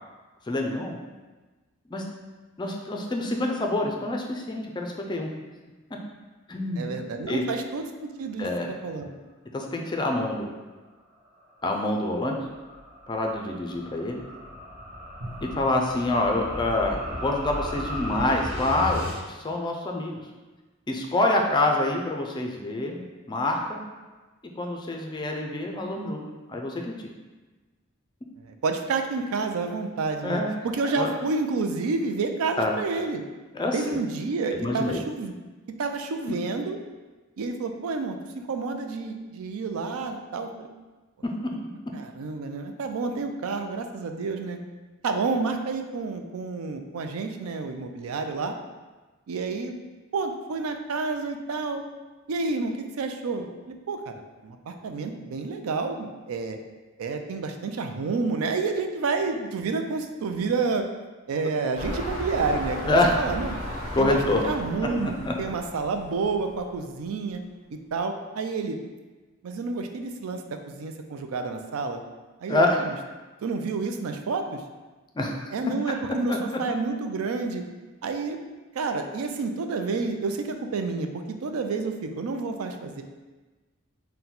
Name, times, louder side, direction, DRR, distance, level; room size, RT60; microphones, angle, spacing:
voice 1, 0.5-1.0 1.9-2.0 2.6-5.3 6.5-6.9 7.3-7.4 8.4-8.7 9.5-10.5 11.6-12.4 13.1-14.2 15.4-20.2 20.9-23.8 24.6-26.2 26.5-26.9 30.2-30.5 31.0-31.1 32.6-32.7 33.5-34.0 34.5-35.0 36.3-36.4 62.8-63.1 63.9-64.4 65.0-65.3 72.5-72.8 75.1-75.5 76.3-76.4, left 2 dB, 20° left, 1 dB, 0.4 m, -26 dB
voice 2, 6.8-9.1 28.4-33.2 33.7-35.3 35.8-36.8 37.4-40.7 41.9-44.6 45.0-48.5 49.3-49.7 50.1-51.8 52.3-54.1 54.4-56.6 57.0-60.9 61.3-63.5 64.0-67.4 67.9-68.8 69.4-72.0 72.4-73.0 73.4-74.6 75.5-77.6 78.0-78.4 78.7-83.0, right 4 dB, 85° right, 6 dB, 0.4 m, -29 dB
Dramatic Build up, 11.4-19.2, left 1 dB, 10° right, 1.1 m, -36 dB
Drum, 15.2-17.6, equal, 55° right, 0.9 m, -44 dB
sound 1, 61.7-66.7 67.4-67.5, left 1 dB, 35° right, 1.2 m, -35 dB
3.9 x 2.2 x 4.2 m, 1.2 s
head